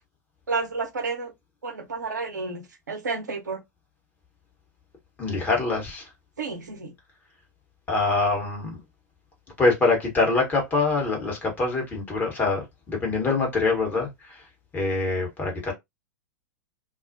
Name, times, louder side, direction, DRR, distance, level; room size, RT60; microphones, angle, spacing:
voice 1, 0.5-1.3 1.6-3.6 6.4-6.9, right 4 dB, 70° right, 0.8 m, -31 dB
voice 2, 5.2-6.1 7.9-8.8 9.6-14.4 14.7-15.7, left 3 dB, 20° left, 1.1 m, -24 dB
2.3 x 2.1 x 2.6 m
figure-of-eight pair, 95°, 10 cm